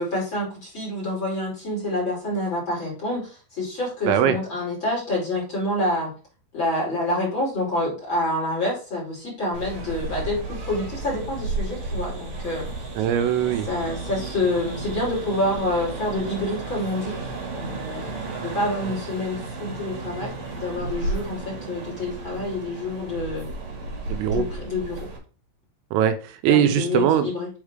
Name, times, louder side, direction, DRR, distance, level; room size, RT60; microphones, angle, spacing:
voice 1, 0.0-6.1 6.5-12.7 13.6-23.5 24.3-25.1 26.5-27.5, left 1 dB, 30° left, -5 dB, 3.0 m, -27 dB
voice 2, 4.1-4.4 13.0-13.7 24.1-24.4 25.9-27.3, right 10 dB, 90° right, 8 dB, 3.4 m, -21 dB
sound 1, 9.5-25.2, right 3 dB, 50° right, 2.3 m, -33 dB
7.3 x 4.6 x 3.6 m, 0.36 s
omnidirectional pair, 5.8 m